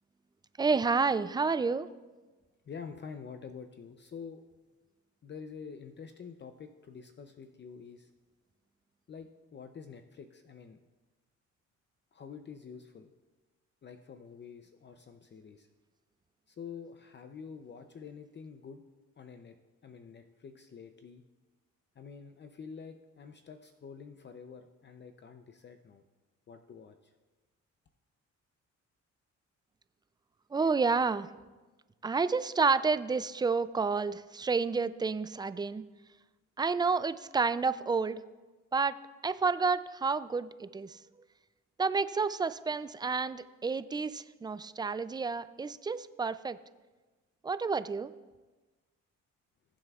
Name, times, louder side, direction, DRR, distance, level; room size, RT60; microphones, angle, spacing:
voice 1, 0.6-1.9 30.5-31.3 32.0-35.8 36.6-38.2 38.7-39.0 39.2-41.0 41.8-46.6 47.4-48.1, right 4 dB, 15° right, 14 dB, 0.3 m, -30 dB
voice 2, 2.7-4.4 5.2-8.1 9.1-10.8 12.1-13.1 13.8-15.7 16.5-18.8 19.2-19.6 19.8-21.2 22.0-26.0 26.5-27.1, left 6 dB, 35° left, 7 dB, 0.6 m, -47 dB
20.5 x 7.6 x 2.4 m, 1.2 s
cardioid pair, 90°, 30 cm